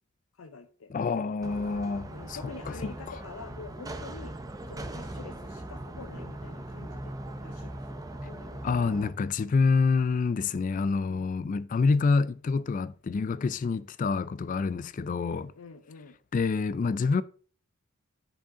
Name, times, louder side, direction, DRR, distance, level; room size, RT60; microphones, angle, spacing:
voice 1, 0.4-0.9 2.1-4.3 4.7-8.6 11.1-11.3 15.2-16.2, left 4 dB, 85° left, 0.6 m, -47 dB
voice 2, 0.9-3.1 8.6-15.5 16.3-17.2, left 4 dB, 40° left, 0.3 m, -27 dB
sound 1, 1.4-9.1, right 1 dB, 15° right, 0.5 m, -40 dB
10.0 x 5.0 x 3.6 m
head